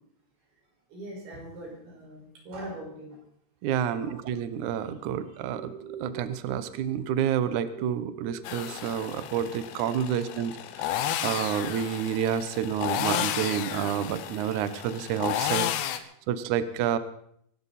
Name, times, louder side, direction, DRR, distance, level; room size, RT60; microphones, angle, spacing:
voice 1, 0.9-3.2 3.9-4.1, right 1 dB, 65° right, -1 dB, 7.4 m, -41 dB
voice 2, 3.6-15.7 16.3-17.0, right 9 dB, 80° right, 12 dB, 1.7 m, -29 dB
sound 1, 8.4-16.0, left 11 dB, 85° left, 3.2 m, -32 dB
24.5 x 13.0 x 4.2 m, 0.67 s
omnidirectional pair, 4.9 m